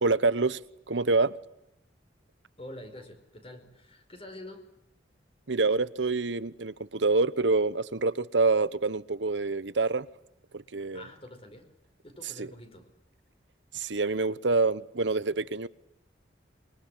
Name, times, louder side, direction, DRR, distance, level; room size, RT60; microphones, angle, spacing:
voice 1, 0.0-0.6 0.9-1.3 5.5-10.1 10.5-11.0 12.4-12.5 13.7-15.7, right 3 dB, 80° right, 1.0 m, -26 dB
voice 2, 2.6-4.6 10.9-11.7 12.0-12.9, left 1 dB, 30° left, 4.9 m, -46 dB
25.0 x 23.5 x 10.0 m
head